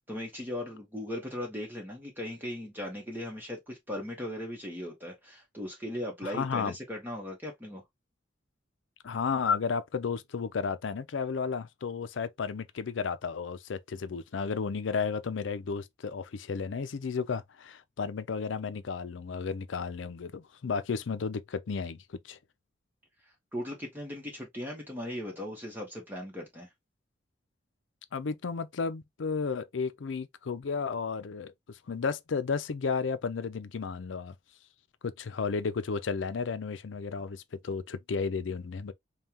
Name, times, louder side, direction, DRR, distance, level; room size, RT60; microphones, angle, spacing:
voice 1, 0.0-7.8 23.5-26.7, left 1 dB, 10° right, 1.1 m, -38 dB
voice 2, 6.2-6.7 9.0-22.4 28.1-34.3 35.0-38.9, left 5 dB, 85° left, 0.5 m, -33 dB
5.4 x 2.3 x 2.9 m
head